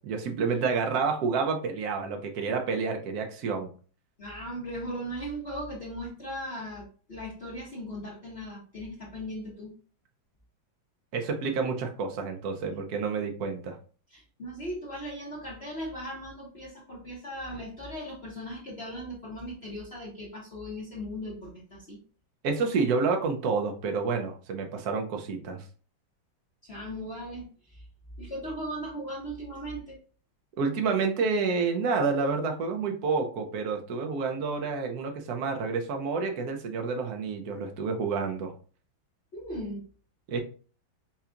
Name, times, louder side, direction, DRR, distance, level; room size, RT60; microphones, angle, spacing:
voice 1, 0.0-3.7 11.1-13.8 22.4-25.6 30.6-38.5 40.3-40.4, right 4 dB, 60° right, 4 dB, 1.1 m, -29 dB
voice 2, 4.2-9.7 14.1-22.0 26.6-27.8 28.2-30.0 39.3-39.8, equal, 45° left, -5 dB, 0.9 m, -38 dB
5.7 x 2.3 x 2.5 m, 0.40 s
omnidirectional pair, 2.1 m